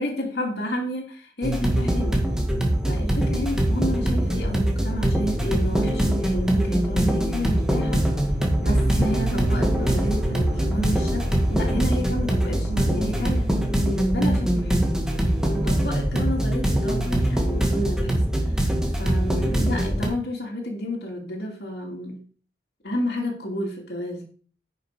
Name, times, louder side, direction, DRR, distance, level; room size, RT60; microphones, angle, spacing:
voice 1, 0.0-2.2 2.9-8.1 8.6-13.5 13.8-14.8 15.4-22.2 22.8-24.2, left 1 dB, 65° left, -1 dB, 2.7 m, -31 dB
sound 1, 1.4-20.1, right 1 dB, 5° right, 1.7 m, -23 dB
sound 2, 4.3-4.9 5.8-6.8 7.6-12.5 13.8-15.6, equal, 40° right, 2.0 m, -40 dB
sound 3, 8.6-13.2, right 1 dB, 60° right, 1.2 m, -31 dB
10.0 x 6.1 x 4.9 m, 0.43 s
head